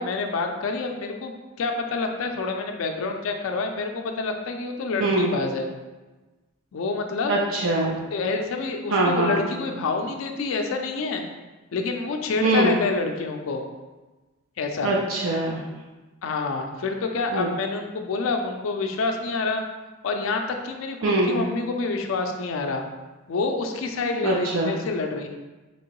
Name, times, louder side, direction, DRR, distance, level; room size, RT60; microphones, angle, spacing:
voice 1, 0.0-5.7 6.7-7.4 8.1-11.2 11.7-13.6 14.6-14.9 16.2-19.6 20.0-22.8 23.3-25.3, left 3 dB, 80° left, 4 dB, 0.4 m, -27 dB
voice 2, 7.3-8.0 8.9-9.4 12.4-12.7 14.8-15.6 17.3-17.5 21.0-21.4 24.2-24.8, right 2 dB, 80° right, -2 dB, 0.4 m, -22 dB
3.5 x 3.0 x 3.0 m, 1.2 s
head